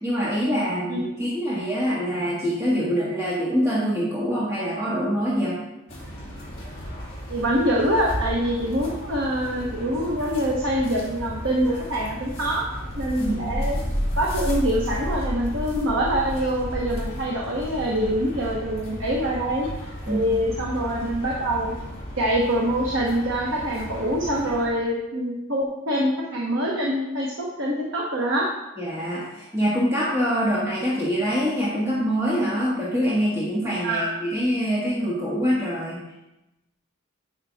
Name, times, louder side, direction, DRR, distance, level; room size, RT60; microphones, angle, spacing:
voice 1, 0.0-5.6 13.2-13.4 20.1-20.2 28.8-36.0, equal, 15° right, -8 dB, 1.6 m, -24 dB
sound 1, 5.9-24.7, equal, 25° left, 2.8 m, -33 dB
voice 2, 7.3-13.8 14.2-19.7 20.1-21.7 22.2-28.5 33.8-34.1, equal, 60° right, -2 dB, 1.2 m, -25 dB
11.5 x 5.7 x 3.6 m, 0.94 s
head